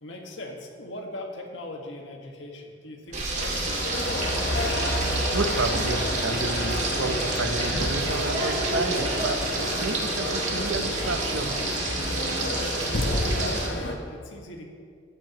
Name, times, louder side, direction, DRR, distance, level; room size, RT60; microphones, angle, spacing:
voice 1, 0.0-4.2 12.9-14.7, left 1 dB, 80° left, 1 dB, 1.7 m, -39 dB
Frying (food), 3.1-13.7, right 2 dB, 35° right, 2.0 m, -30 dB
sound 1, 3.2-13.9, left 1 dB, 60° left, 1.2 m, -30 dB
voice 2, 5.3-11.6, right 3 dB, 80° right, 8 dB, 0.8 m, -31 dB
14.5 x 13.5 x 3.0 m, 2.1 s
head